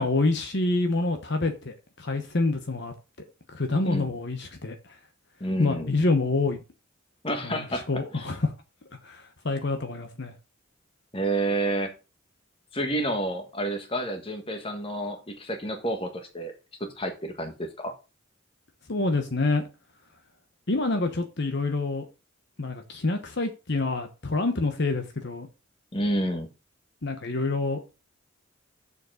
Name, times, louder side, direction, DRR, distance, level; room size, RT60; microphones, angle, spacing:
voice 1, 0.0-2.9 3.5-5.0 5.6-6.6 7.4-8.5 9.0-10.3 18.9-19.7 20.7-22.1 22.6-25.5 27.0-27.8, left 3 dB, 60° left, 1.1 m, -27 dB
voice 2, 5.4-5.9 7.2-7.9 8.1-8.3 11.1-11.9 12.7-16.5 16.8-17.9 25.9-26.5, right 1 dB, 25° left, 1.5 m, -29 dB
6.9 x 5.2 x 6.3 m
head